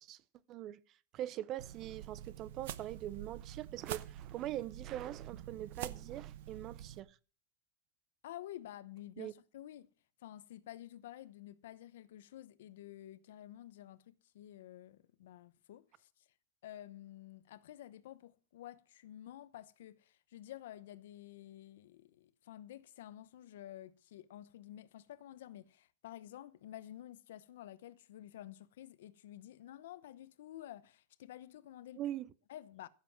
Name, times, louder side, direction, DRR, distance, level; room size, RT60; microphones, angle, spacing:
voice 1, 0.5-0.8 1.1-7.2 9.2-9.3 32.0-32.3, right 13 dB, 30° right, 0.6 m, -42 dB
sound 1, 1.6-7.0, right 11 dB, 65° right, 0.9 m, -47 dB
voice 2, 8.2-9.9 10.2-16.2 16.6-32.1 32.5-32.9, left 13 dB, 75° left, 0.9 m, -51 dB
15.0 x 7.4 x 6.0 m
supercardioid pair, 165°, 0 cm